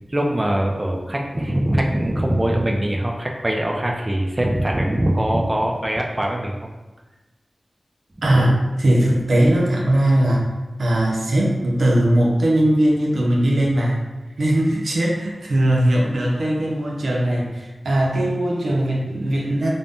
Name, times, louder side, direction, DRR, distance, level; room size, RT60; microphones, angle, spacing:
voice 1, 0.1-6.7 8.2-8.5, right 1 dB, 25° right, 0 dB, 0.3 m, -22 dB
voice 2, 8.2-8.5 8.8-10.4 10.8-14.0 14.4-19.7, right 1 dB, 85° right, -2 dB, 0.5 m, -19 dB
2.6 x 2.0 x 3.4 m, 1.1 s
wide cardioid pair, 60°, 0 cm